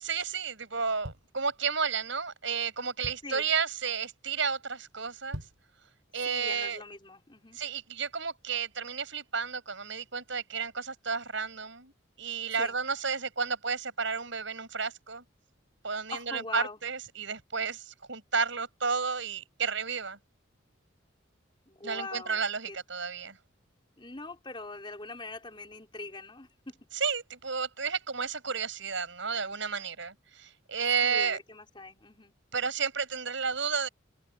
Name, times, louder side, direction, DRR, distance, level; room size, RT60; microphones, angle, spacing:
voice 1, 0.0-5.4 6.1-6.8 7.5-11.9 12.2-15.2 15.8-20.2 21.8-23.4 26.9-31.4 32.5-33.9, right 5 dB, 65° right, 5.8 m, -32 dB
sound 1, 0.7-2.0 2.5-2.6 2.8-3.5 4.0-4.2 4.5-4.6 5.1-5.8 6.2-6.3, equal, 90° right, 4.4 m, -43 dB
voice 2, 6.3-7.6 12.6-12.8 16.1-16.8 21.7-22.8 24.0-26.8 31.0-32.3, left 3 dB, 25° left, 4.2 m, -42 dB
open air
head